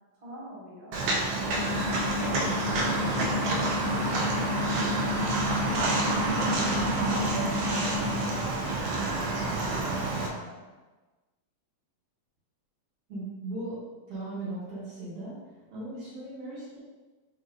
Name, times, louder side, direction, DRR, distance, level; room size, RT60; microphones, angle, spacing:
voice 1, 0.2-1.0 1.4-7.3 7.7-10.5, right 1 dB, 25° right, -9 dB, 0.7 m, -44 dB
Walk footsteps, 0.9-10.3, right 3 dB, 80° right, 1.5 m, -28 dB
sound 1, 1.5-8.3, left 5 dB, 70° left, 1.8 m, -33 dB
voice 2, 13.1-13.8 14.1-15.3 15.7-16.8, right 2 dB, 60° right, -8 dB, 2.2 m, -37 dB
4.9 x 4.0 x 2.4 m, 1.2 s
omnidirectional pair, 3.3 m